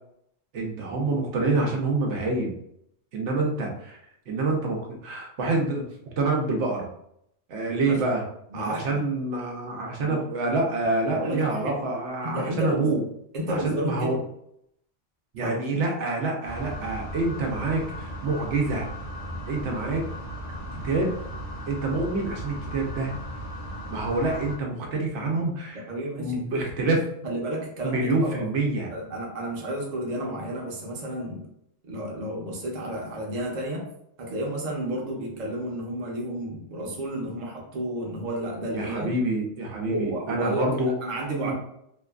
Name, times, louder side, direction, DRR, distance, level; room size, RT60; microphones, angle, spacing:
voice 1, 0.5-2.6 3.1-4.0 4.3-5.8 6.2-6.9 7.5-8.2 8.5-13.0 13.5-14.2 15.3-18.9 19.5-20.0 20.8-21.1 21.7-23.1 23.9-25.8 26.2-27.0 27.8-28.9 38.7-40.9 41.4-41.5, right 2 dB, 80° right, 0 dB, 1.0 m, -27 dB
voice 2, 7.7-8.0 8.5-9.1 10.0-10.2 11.1-11.8 12.2-12.9 13.3-14.2 15.4-15.8 25.7-26.5 27.2-28.5 28.9-31.5 31.9-33.9 34.2-39.2 39.8-41.5, right 1 dB, 45° right, -1 dB, 0.7 m, -31 dB
sound 1, 16.4-24.6, equal, 50° left, 0.8 m, -36 dB
2.8 x 2.3 x 2.2 m, 0.73 s
omnidirectional pair, 1.2 m